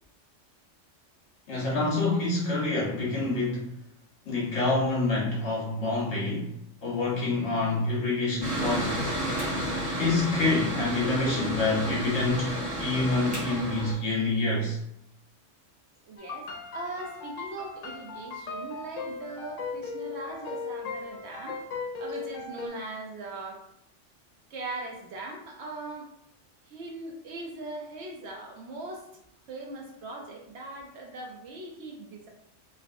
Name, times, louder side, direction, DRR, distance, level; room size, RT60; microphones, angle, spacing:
voice 1, 1.5-3.7 4.3-6.5 6.8-9.1 10.0-14.8, left 2 dB, 65° left, -4 dB, 1.3 m, -27 dB
Mechanical fan, 8.4-13.9, right 1 dB, 5° right, 0.9 m, -31 dB
voice 2, 16.0-16.5 16.7-21.6 22.0-23.6 24.5-26.1 26.6-32.3, right 2 dB, 70° right, 0 dB, 0.8 m, -40 dB
sound 1, 16.2-22.7, left 4 dB, 85° left, 1.0 m, -38 dB
3.2 x 2.5 x 2.5 m, 0.77 s
omnidirectional pair, 1.3 m